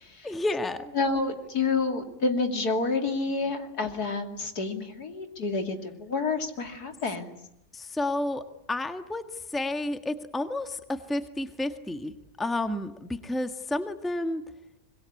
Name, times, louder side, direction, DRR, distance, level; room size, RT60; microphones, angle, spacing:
voice 1, 0.2-0.9 7.7-9.2 9.5-12.1 12.4-14.4, left 2 dB, ahead, 8 dB, 1.5 m, -31 dB
voice 2, 1.0-7.4, left 4 dB, 75° left, 6 dB, 3.3 m, -29 dB
25.5 x 22.0 x 9.7 m, 0.84 s
omnidirectional pair, 1.7 m